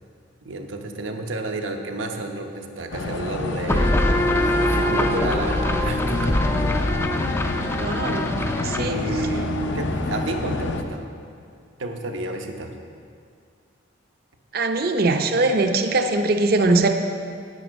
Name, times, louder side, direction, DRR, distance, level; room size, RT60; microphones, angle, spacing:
voice 1, 0.4-3.9 4.3-6.4 8.7-11.0 11.8-12.7, right 2 dB, 90° right, 4 dB, 0.9 m, -31 dB
sound 1, 2.9-10.8, left 3 dB, 70° left, 0.6 m, -29 dB
sound 2, 3.7-11.0, left 1 dB, 10° left, 0.3 m, -24 dB
voice 2, 7.7-8.3 8.6-9.0 14.5-16.9, right 2 dB, 50° right, 6 dB, 0.6 m, -21 dB
9.4 x 8.8 x 5.2 m, 2.4 s
head